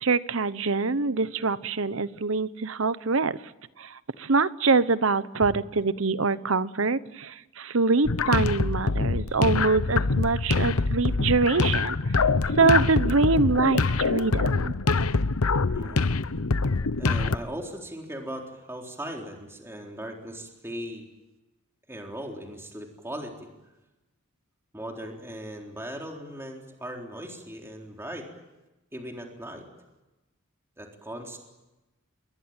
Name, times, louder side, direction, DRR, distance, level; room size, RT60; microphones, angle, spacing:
voice 1, 0.0-3.4 3.8-3.9 4.2-12.0 12.6-14.7, right 4 dB, 65° right, 15 dB, 1.0 m, -24 dB
sound 1, 8.0-17.4, left 3 dB, 80° left, 0.9 m, -24 dB
voice 2, 15.7-16.1 17.0-21.0 21.9-23.5 24.7-28.3 28.9-29.7 30.8-31.4, equal, 10° right, 1 dB, 3.9 m, -38 dB
28.0 x 22.5 x 9.0 m, 1.0 s
head